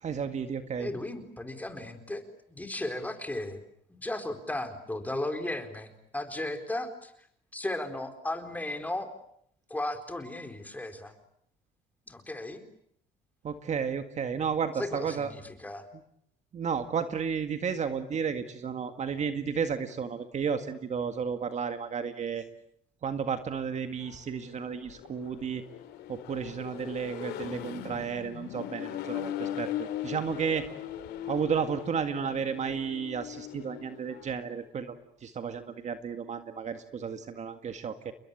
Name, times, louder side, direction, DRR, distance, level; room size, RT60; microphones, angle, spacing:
voice 1, 0.0-0.9 13.4-15.3 16.5-22.4 23.0-25.6 26.1-30.7 31.3-38.1, right 6 dB, 45° right, 8 dB, 1.9 m, -32 dB
voice 2, 0.8-2.2 2.5-3.6 3.9-7.1 7.5-9.1 9.7-11.1 12.1-12.6 14.8-15.9, left 1 dB, 10° left, 7 dB, 4.4 m, -35 dB
Accelerating revving vroom, 23.9-34.3, left 11 dB, 85° left, 2.9 m, -39 dB
30.0 x 21.5 x 8.5 m, 0.71 s
cardioid pair, 110°, 17 cm